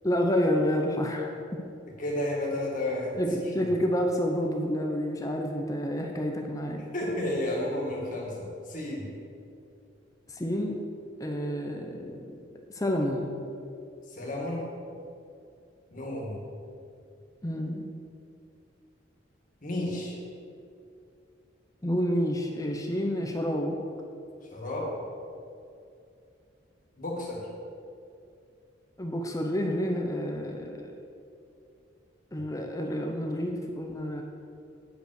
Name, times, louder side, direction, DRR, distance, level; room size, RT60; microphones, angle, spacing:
voice 1, 0.0-1.4 3.2-6.8 10.3-10.8 11.2-12.4 12.7-13.3 17.4-17.9 21.8-23.8 29.0-30.9 32.3-34.2, equal, 15° left, 2 dB, 0.6 m, -29 dB
voice 2, 2.0-3.1 3.4-3.6 6.9-9.1 14.1-14.7 15.9-16.4 19.6-20.2 24.5-24.9 27.0-27.4, left 1 dB, 45° left, -3 dB, 2.1 m, -32 dB
9.2 x 5.4 x 6.4 m, 2.5 s
head